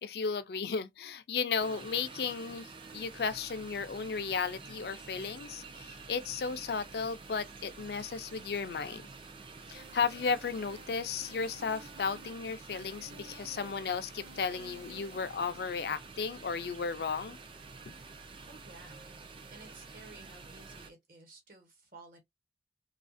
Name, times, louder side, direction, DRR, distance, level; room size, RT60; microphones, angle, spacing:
voice 1, 0.0-9.1 9.7-17.4 17.9-18.0, left 5 dB, 65° left, 0.4 m, -34 dB
sound 1, 1.6-20.9, right 4 dB, 30° right, 0.3 m, -49 dB
sound 2, 9.7-15.6, right 2 dB, 70° right, 0.8 m, -54 dB
voice 2, 18.5-19.0 19.5-22.2, right 2 dB, 50° right, 1.1 m, -54 dB
2.7 x 2.4 x 2.5 m
head